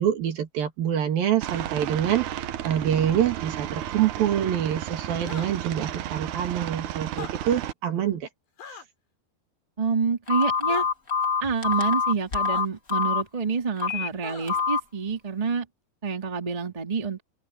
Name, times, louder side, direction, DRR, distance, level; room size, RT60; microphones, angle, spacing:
voice 1, 0.0-2.3 2.6-8.3, right 10 dB, 60° right, 3.7 m, -26 dB
Aircraft, 1.4-7.7, right 12 dB, 80° right, 1.7 m, -33 dB
sound 1, 5.2-5.5 7.1-7.3 8.6-8.9 10.7-10.9 12.5-12.6 14.2-14.7, left 7 dB, 75° left, 6.3 m, -40 dB
voice 2, 9.8-10.8 11.4-15.7 16.0-17.2, right 5 dB, 15° right, 1.6 m, -27 dB
Telephone, 10.3-13.2 13.8-14.1 14.5-14.8, left 5 dB, 30° left, 1.5 m, -25 dB
open air
omnidirectional pair, 4.9 m